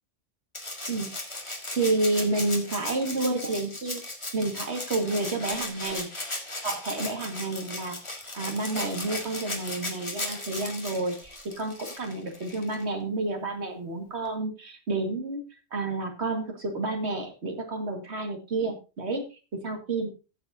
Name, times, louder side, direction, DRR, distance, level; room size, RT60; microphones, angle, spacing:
Rattle (instrument), 0.5-12.9 14.3-14.4, left 2 dB, 25° left, 1.9 m, -37 dB
voice 1, 1.7-4.0 4.3-6.1 6.6-11.3 11.6-15.4 15.7-20.1, right 2 dB, 65° right, 3 dB, 2.2 m, -30 dB
15.5 x 7.7 x 2.7 m, 0.31 s
omnidirectional pair, 1.2 m